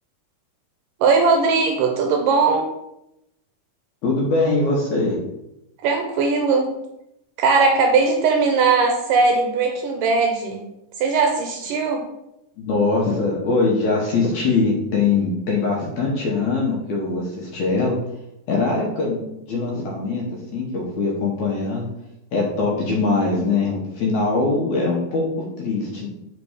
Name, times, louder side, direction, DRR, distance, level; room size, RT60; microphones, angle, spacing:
voice 1, 1.0-2.7 5.8-6.7 7.4-10.6 11.0-12.1, right 4 dB, 80° right, 3 dB, 2.0 m, -19 dB
voice 2, 4.0-5.2 12.6-18.0 18.5-20.2 20.5-21.9 22.3-26.1, left 3 dB, 65° left, -2 dB, 2.0 m, -22 dB
5.3 x 4.1 x 4.8 m, 0.85 s
omnidirectional pair, 4.2 m